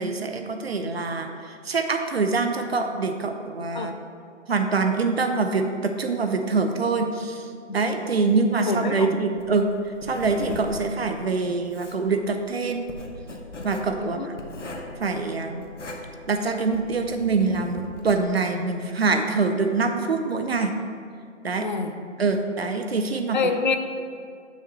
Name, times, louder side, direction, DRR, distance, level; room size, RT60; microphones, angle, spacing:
voice 1, 0.0-3.9 4.5-7.5 7.7-9.7 10.0-12.8 13.6-14.3 15.0-15.6 16.3-20.7 21.4-21.7 22.2-23.4, right 4 dB, 55° right, 5 dB, 0.7 m, -25 dB
voice 2, 8.7-9.2 14.0-14.3 21.6-22.0 23.3-23.8, left 5 dB, 40° left, 7 dB, 0.4 m, -26 dB
Writing, 9.4-18.3, left 2 dB, 70° left, 1.1 m, -39 dB
6.9 x 5.9 x 4.3 m, 2.2 s
figure-of-eight pair, 140°, 37 cm